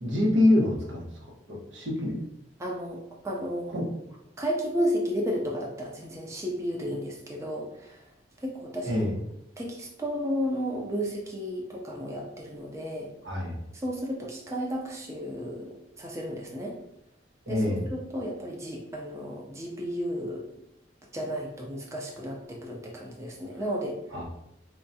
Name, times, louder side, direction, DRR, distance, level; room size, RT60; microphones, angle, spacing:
voice 1, 0.0-2.2 3.7-3.9 8.8-9.2 13.2-13.6 17.5-17.8 24.1-24.2, left 1 dB, 90° right, -1 dB, 0.9 m, -26 dB
voice 2, 2.6-3.9 4.4-8.0 8.4-9.0 9.6-13.1 13.8-16.8 17.5-20.5 21.1-23.9, equal, 15° right, -1 dB, 0.5 m, -33 dB
4.5 x 2.3 x 2.6 m, 0.79 s
head